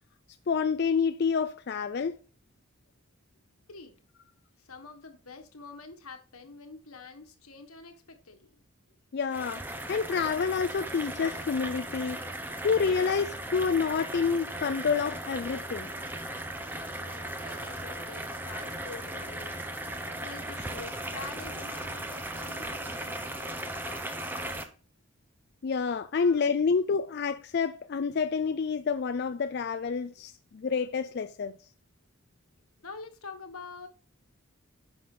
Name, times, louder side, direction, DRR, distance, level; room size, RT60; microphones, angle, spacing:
voice 1, 0.5-2.2 9.1-9.6 9.9-12.2 12.6-15.9 25.6-31.5, left 5 dB, 50° left, 0.3 m, -28 dB
voice 2, 4.6-8.6 16.6-19.6 20.2-24.7 26.2-26.4 32.8-33.9, left 4 dB, 80° left, 1.4 m, -47 dB
sound 1, 9.3-24.6, right 1 dB, 10° right, 0.8 m, -37 dB
10.5 x 6.0 x 3.8 m
head